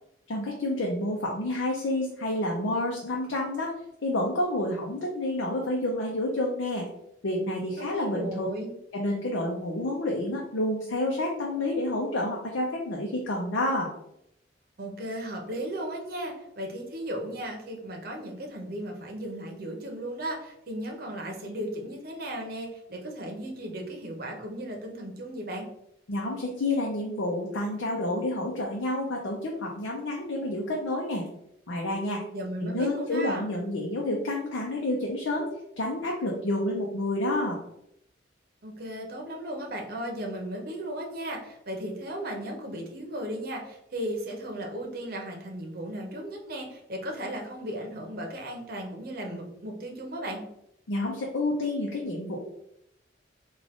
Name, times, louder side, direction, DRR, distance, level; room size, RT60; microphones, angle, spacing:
voice 1, 0.3-3.7 4.0-6.9 7.2-8.5 8.9-13.9 26.1-31.2 31.7-32.2 32.6-35.5 35.8-37.6 50.9-52.4, left 1 dB, 90° left, -2 dB, 0.6 m, -29 dB
voice 2, 7.8-8.8 14.8-25.7 32.3-33.5 38.6-50.4, right 1 dB, 50° right, 1 dB, 0.8 m, -36 dB
3.7 x 2.4 x 3.5 m, 0.78 s
head